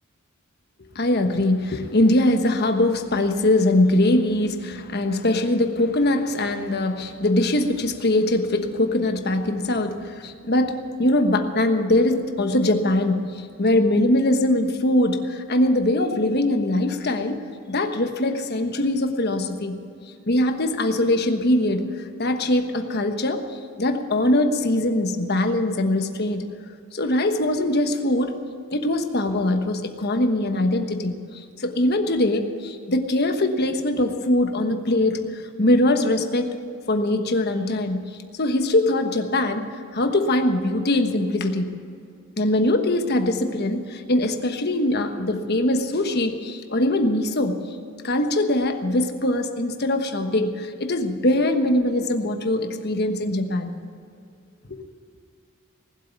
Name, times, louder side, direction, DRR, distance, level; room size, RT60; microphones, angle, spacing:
voice 1, 0.9-19.8 20.3-23.4 23.8-26.5 26.9-28.4 28.7-36.5 36.9-38.0 38.4-39.6 39.9-41.7 42.4-47.6 48.0-53.7 54.7-54.8, left 1 dB, 50° left, 6 dB, 1.3 m, -22 dB
19.0 x 8.1 x 9.2 m, 2.4 s
head